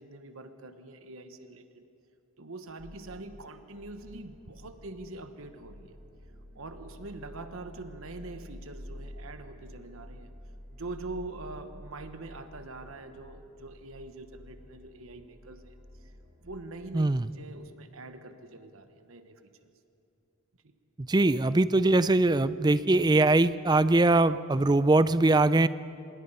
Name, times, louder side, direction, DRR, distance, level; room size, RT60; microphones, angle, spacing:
voice 1, 0.0-1.8 2.4-5.9 6.5-10.3 10.7-15.8 16.4-19.4 20.6-20.7, right 2 dB, 65° right, 9 dB, 1.1 m, -44 dB
sound 1, 2.8-17.2, equal, 40° right, 3.3 m, -49 dB
voice 2, 16.9-17.3 21.0-25.7, right 2 dB, 20° right, 15 dB, 0.4 m, -22 dB
26.0 x 21.0 x 5.6 m, 2.7 s
head